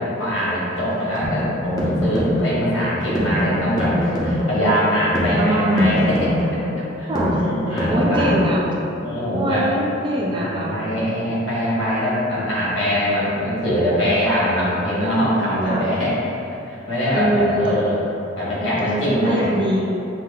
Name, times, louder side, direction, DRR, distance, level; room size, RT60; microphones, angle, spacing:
voice 1, 0.1-6.3 7.0-8.3 9.0-9.7 10.3-16.2 16.7-18.0 18.4-19.6, equal, 85° left, -8 dB, 1.5 m, -22 dB
sound 1, 0.9-8.9, equal, 20° left, 0.6 m, -24 dB
voice 2, 5.4-6.0 7.1-8.6 9.3-10.8 15.7-15.9 17.1-17.8 18.6-19.9, equal, 25° right, -3 dB, 0.4 m, -23 dB
5.8 x 2.1 x 3.7 m, 2.9 s
head